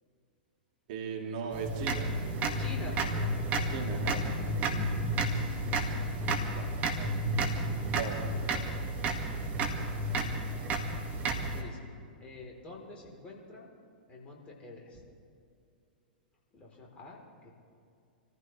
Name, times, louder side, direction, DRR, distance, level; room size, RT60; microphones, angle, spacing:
voice 1, 0.9-2.2 3.7-4.3 7.9-8.2, right 5 dB, 50° right, 1 dB, 2.3 m, -37 dB
sound 1, 1.5-11.6, right 2 dB, 30° right, 1.9 m, -31 dB
voice 2, 2.5-4.0 5.3-7.1 8.5-9.0 9.4-9.5 11.4-11.9 12.2-13.7 14.1-15.0 16.5-17.5, left 3 dB, 25° left, -2 dB, 3.8 m, -48 dB
27.0 x 15.0 x 3.3 m, 2.4 s
figure-of-eight pair, 105°, 5 cm